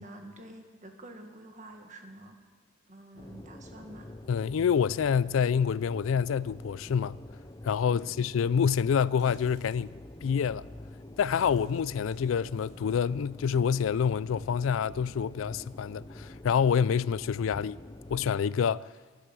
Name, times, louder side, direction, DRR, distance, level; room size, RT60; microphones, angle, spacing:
voice 1, 0.0-2.4 2.9-4.1 7.9-8.3, right 1 dB, 35° right, 1.8 m, -48 dB
sound 1, 3.2-18.4, left 1 dB, 20° left, 0.6 m, -46 dB
voice 2, 4.3-7.2 7.6-9.9 10.2-10.7 11.2-17.8 18.1-18.9, left 7 dB, 80° left, 0.4 m, -27 dB
sound 2, 9.2-9.9 10.7-10.8 11.2-13.7, right 1 dB, 15° right, 3.0 m, -64 dB
15.0 x 11.5 x 7.7 m
head